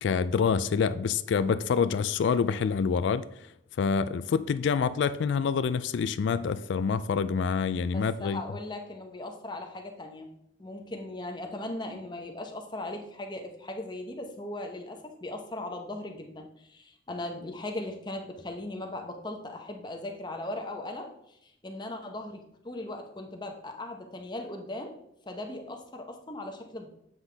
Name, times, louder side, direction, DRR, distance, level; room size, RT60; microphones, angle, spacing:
voice 1, 0.0-3.5 3.8-8.4, left 6 dB, 65° left, 0.3 m, -27 dB
voice 2, 7.9-10.3 10.6-25.0 25.3-26.9, left 1 dB, 20° left, 0.9 m, -38 dB
7.9 x 5.7 x 3.4 m
head